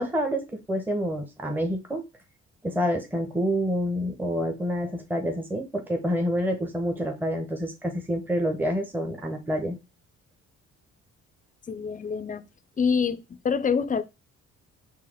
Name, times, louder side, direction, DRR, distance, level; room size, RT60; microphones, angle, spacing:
voice 1, 0.0-2.0 2.6-9.8, equal, 5° right, 0.9 m, -28 dB
voice 2, 11.7-12.5 12.8-14.0, left 6 dB, 25° left, 0.5 m, -26 dB
4.7 x 2.9 x 3.4 m
cardioid pair, 90°, 30 cm